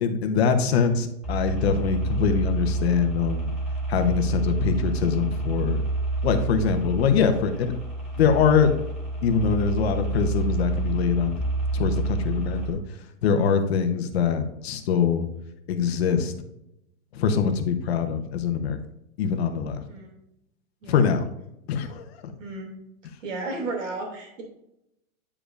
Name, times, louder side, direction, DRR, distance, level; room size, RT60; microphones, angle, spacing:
voice 1, 0.0-3.5 3.9-5.8 6.2-7.7 8.2-8.7 9.2-11.4 11.7-12.8 13.2-15.3 15.7-16.3 17.1-18.8 19.2-19.8 20.9-21.2 21.7-22.0, left 6 dB, 50° left, 6 dB, 0.9 m, -23 dB
sound 1, 1.2-12.7, right 2 dB, ahead, 1.0 m, -28 dB
voice 2, 22.4-22.7 23.2-24.4, right 3 dB, 60° right, 1 dB, 2.6 m, -33 dB
9.7 x 5.2 x 2.5 m, 0.84 s
supercardioid pair, 170°, 42 cm